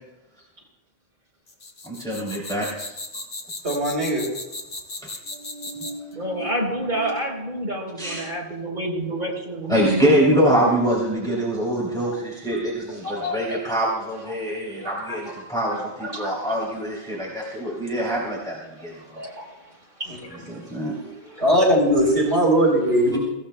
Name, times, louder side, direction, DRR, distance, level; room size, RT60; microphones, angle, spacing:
sound 1, 1.5-6.1, left 2 dB, 70° left, 1.8 m, -35 dB
voice 1, 1.9-2.9 5.3-6.5 6.9-7.1 8.0-8.3 9.7-19.2 20.5-21.5, equal, 5° left, -6 dB, 2.9 m, -25 dB
voice 2, 3.6-4.3 21.4-23.2, equal, 65° right, -2 dB, 4.1 m, -19 dB
voice 3, 6.1-10.3 13.0-13.6 14.8-16.7 17.1-17.4 17.8-17.9 18.8-19.6 20.0-20.6 21.4-21.5, right 1 dB, 40° right, -1 dB, 4.1 m, -30 dB
24.5 x 15.5 x 2.2 m, 0.99 s
omnidirectional pair, 1.2 m